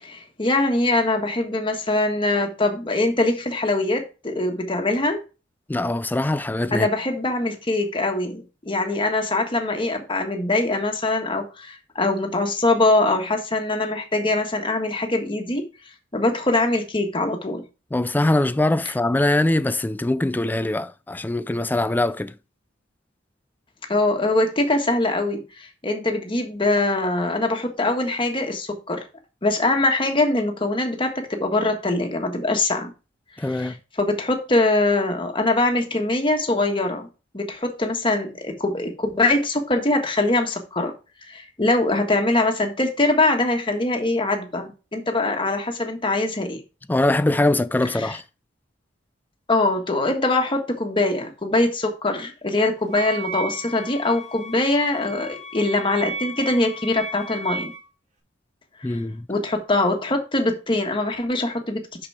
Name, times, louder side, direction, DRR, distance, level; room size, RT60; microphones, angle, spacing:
voice 1, 0.0-5.2 6.7-15.6 16.1-17.6 23.9-25.4 25.8-29.0 29.4-32.9 33.4-37.1 37.3-40.9 41.3-46.6 47.9-48.2 49.5-57.7 58.8-59.0 59.3-62.1, left 2 dB, 25° left, 1.4 m, -23 dB
voice 2, 5.7-6.9 17.9-22.3 33.4-33.7 46.9-48.2 58.8-59.2, left 1 dB, 10° left, 0.3 m, -22 dB
Wind instrument woodwind instrument, 52.9-57.8, right 2 dB, 40° right, 1.9 m, -35 dB
6.1 x 5.9 x 4.8 m
head